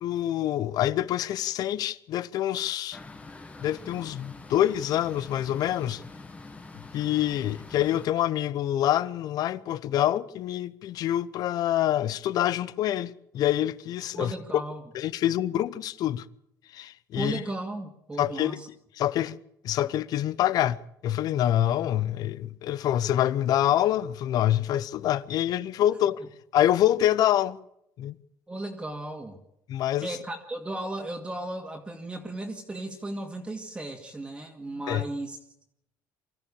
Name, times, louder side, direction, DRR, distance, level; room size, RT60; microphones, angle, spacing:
voice 1, 0.0-3.0 3.6-6.0 6.9-14.6 14.9-16.3 16.7-17.4 18.2-18.6 19.0-19.4 19.6-20.8 21.0-26.2 26.5-27.6 28.0-28.1 29.7-30.1 34.9-35.0, left 12 dB, 60° left, 0.8 m, -26 dB
sound 1, 2.9-8.1, left 3 dB, 15° left, 1.6 m, -45 dB
voice 2, 14.1-14.8 17.2-18.7 28.5-29.4 30.0-35.4, right 2 dB, 15° right, 2.2 m, -35 dB
24.5 x 14.0 x 8.6 m
cardioid pair, 120°, 7 cm